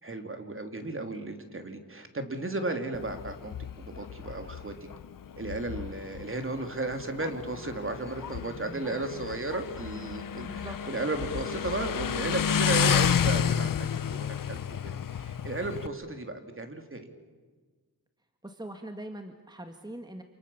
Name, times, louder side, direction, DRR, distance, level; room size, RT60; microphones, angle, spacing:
voice 1, 0.0-4.7 5.4-13.7 14.1-17.1, right 2 dB, 35° right, 6 dB, 3.1 m, -34 dB
Motorcycle, 2.9-15.9, left 8 dB, 70° left, 0.8 m, -31 dB
voice 2, 8.7-9.0 10.4-10.8 18.4-20.2, right 1 dB, 10° right, 6 dB, 1.9 m, -42 dB
28.5 x 27.5 x 7.2 m, 1.4 s
wide cardioid pair, 80°, 34 cm